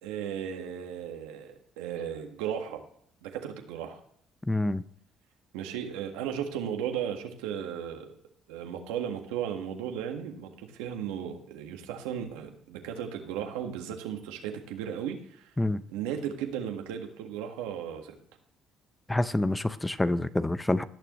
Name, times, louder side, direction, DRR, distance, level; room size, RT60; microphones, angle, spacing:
voice 1, 0.0-2.8 3.2-4.0 5.5-8.2 8.5-15.5 15.9-18.2, right 9 dB, 85° right, 4 dB, 1.7 m, -35 dB
voice 2, 4.5-4.8 15.6-15.8 19.1-20.8, left 2 dB, 10° left, 14 dB, 0.7 m, -27 dB
18.0 x 6.8 x 3.1 m, 0.65 s
supercardioid pair, 75°, 0 cm